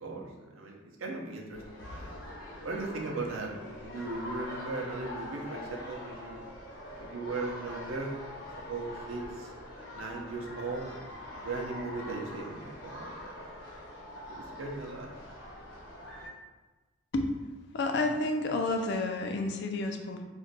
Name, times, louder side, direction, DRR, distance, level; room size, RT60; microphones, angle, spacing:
voice 1, 0.0-1.6 1.9-2.1 2.6-6.4 7.0-8.1 8.7-9.5 9.9-11.1 11.4-13.5 14.3-15.1, right 3 dB, 90° right, 0 dB, 0.6 m, -38 dB
sound 1, 1.5-16.3, left 1 dB, 90° left, 1.0 m, -44 dB
voice 2, 17.7-20.2, left 2 dB, 60° left, 4 dB, 0.4 m, -30 dB
2.5 x 2.2 x 3.9 m, 1.2 s
head